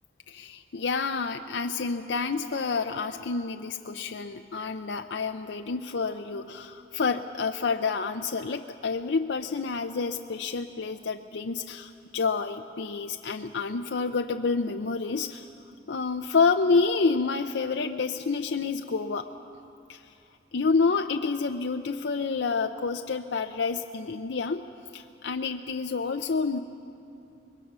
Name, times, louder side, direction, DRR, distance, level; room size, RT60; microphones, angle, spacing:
voice 1, 0.3-15.5 15.9-19.3 19.9-20.0 20.5-24.7 24.9-26.6, left 4 dB, 85° left, 6 dB, 0.6 m, -28 dB
24.0 x 21.5 x 6.2 m, 2.6 s
head